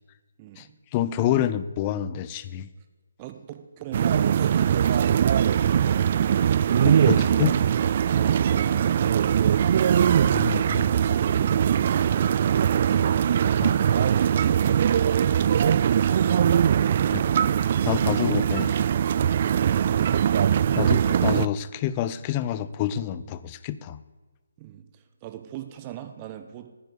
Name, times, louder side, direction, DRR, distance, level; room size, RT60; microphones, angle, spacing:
voice 1, 0.4-0.7 3.2-5.2 8.1-9.4 10.8-13.0 13.9-15.3 24.6-26.7, right 12 dB, 25° right, 8 dB, 1.1 m, -41 dB
voice 2, 0.9-2.7 6.8-7.5 10.3-10.9 13.6-13.8 17.1-17.2 17.9-18.9 20.8-24.0, left 11 dB, 25° left, 14 dB, 0.5 m, -28 dB
sound 1, 3.9-21.5, right 9 dB, 40° right, 0.3 m, -21 dB
9.4 x 9.2 x 8.2 m, 1.3 s
figure-of-eight pair, 145°, 0 cm